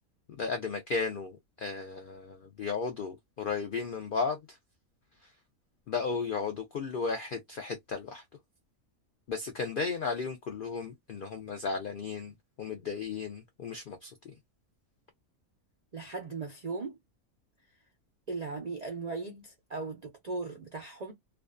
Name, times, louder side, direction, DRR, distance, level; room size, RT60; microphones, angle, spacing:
voice 1, 0.4-4.6 5.2-5.3 5.9-8.2 9.3-12.3 12.6-14.3, left 4 dB, 85° left, 0.4 m, -34 dB
voice 2, 15.9-17.0 18.3-21.1, right 3 dB, 75° right, 0.3 m, -38 dB
2.5 x 2.2 x 2.4 m
omnidirectional pair, 1.5 m